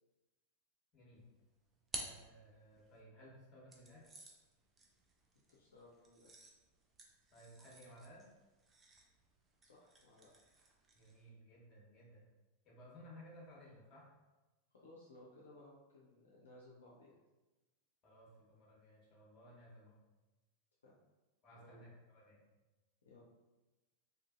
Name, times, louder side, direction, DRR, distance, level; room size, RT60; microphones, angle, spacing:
voice 1, 0.9-1.3 1.9-4.1 7.3-8.2 10.9-12.2 12.6-14.1 18.0-20.0 21.4-22.4, equal, 30° left, -5 dB, 1.0 m, -58 dB
sound 1, 1.2-3.0 3.7-11.3, right 2 dB, 20° right, 0.4 m, -54 dB
voice 2, 5.5-6.5 9.6-10.3 14.7-17.1 20.8-20.9 21.6-21.9 23.0-23.2, left 2 dB, 65° left, -5 dB, 0.4 m, -60 dB
2.7 x 2.5 x 2.4 m, 1.1 s
figure-of-eight pair, 90°, 0 cm